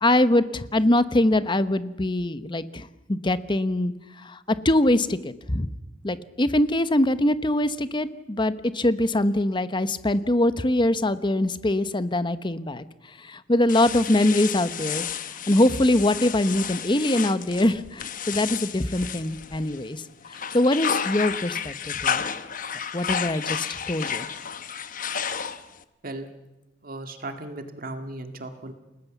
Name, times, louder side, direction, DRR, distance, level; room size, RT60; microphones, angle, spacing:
voice 1, 0.0-3.9 4.2-5.7 6.0-12.8 13.2-15.0 15.5-20.0 20.3-22.2 22.9-24.3, left 1 dB, 25° left, 13 dB, 1.0 m, -23 dB
sound 1, 13.7-19.9 20.2-25.8, left 7 dB, 50° left, 1.0 m, -31 dB
voice 2, 26.8-28.7, right 2 dB, 50° right, 6 dB, 2.0 m, -36 dB
29.0 x 19.0 x 7.2 m, 1.0 s
head